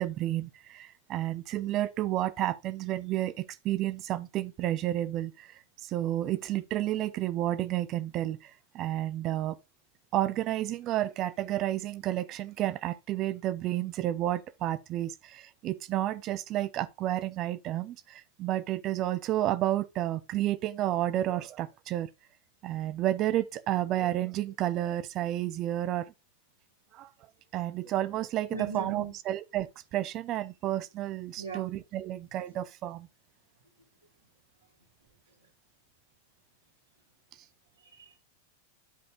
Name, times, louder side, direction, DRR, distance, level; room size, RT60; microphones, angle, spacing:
voice 1, 0.0-5.5 5.8-9.6 10.1-22.1 22.6-26.1 26.9-27.1 27.5-33.1, right 13 dB, 35° right, 0.9 m, -31 dB
voice 2, 28.5-29.1 31.4-31.7 37.8-38.2, right 5 dB, 85° right, 3.2 m, -38 dB
10.5 x 5.3 x 3.7 m
figure-of-eight pair, 90°, 0 cm